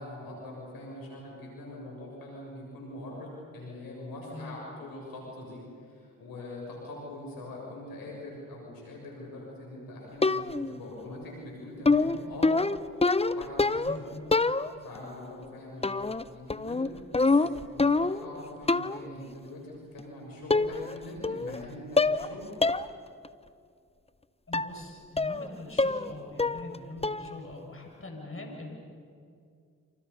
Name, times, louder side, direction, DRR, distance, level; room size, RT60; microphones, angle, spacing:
voice 1, 0.0-12.6 13.3-14.0 14.8-16.9 17.2-22.5 28.3-28.4, left 1 dB, 85° left, -2 dB, 7.4 m, -43 dB
voice 2, 4.3-4.6 13.9-14.5 24.5-28.8, left 2 dB, 40° left, 1 dB, 7.0 m, -43 dB
sound 1, 10.2-10.8 11.8-14.0 14.3-15.0 15.8-16.2 16.5-18.3 18.7-19.1 20.0-20.1 20.5-21.0 21.2-21.6 22.0-22.3 22.6-22.8 23.2-23.3 24.5-24.8 25.2-25.5 25.8-26.1 26.4-26.8 27.0-27.4, left 3 dB, 15° left, 0.8 m, -26 dB
30.0 x 26.5 x 5.7 m, 2.3 s
supercardioid pair, 45°, 34 cm